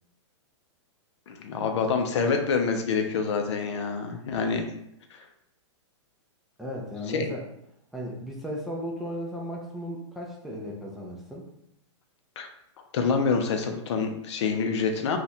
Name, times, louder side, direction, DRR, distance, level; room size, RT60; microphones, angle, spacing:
voice 1, 1.3-4.7 5.1-5.2 7.1-7.3 12.4-12.5 12.9-15.2, left 5 dB, 65° left, 5 dB, 0.6 m, -26 dB
voice 2, 6.6-7.4 7.9-11.5, equal, ahead, -3 dB, 0.4 m, -35 dB
2.8 x 2.4 x 4.1 m, 0.77 s
hypercardioid pair, 150°, 16 cm